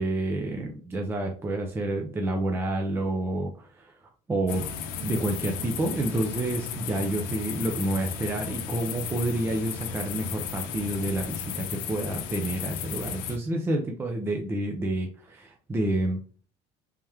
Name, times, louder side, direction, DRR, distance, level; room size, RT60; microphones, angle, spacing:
voice 1, 0.0-4.7 5.0-16.2, right 1 dB, 15° right, 2 dB, 0.5 m, -29 dB
sound 1, 4.5-13.4, left 7 dB, 80° left, 0.6 m, -35 dB
3.5 x 2.9 x 3.3 m, 0.39 s
cardioid pair, 140°, 15 cm